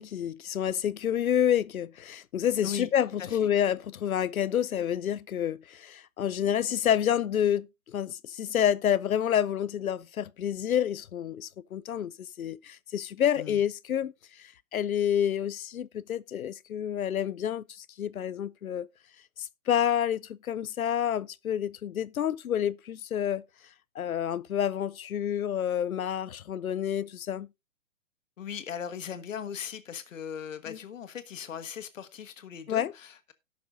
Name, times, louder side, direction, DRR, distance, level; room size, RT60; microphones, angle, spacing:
voice 1, 0.0-12.1 12.4-18.9 19.4-23.4 24.0-27.5 30.7-30.8 32.7-32.9, left 9 dB, 85° left, 0.6 m, -29 dB
voice 2, 28.4-33.3, left 8 dB, 65° left, 1.4 m, -38 dB
17.5 x 6.0 x 2.5 m
hypercardioid pair, 130°, 41 cm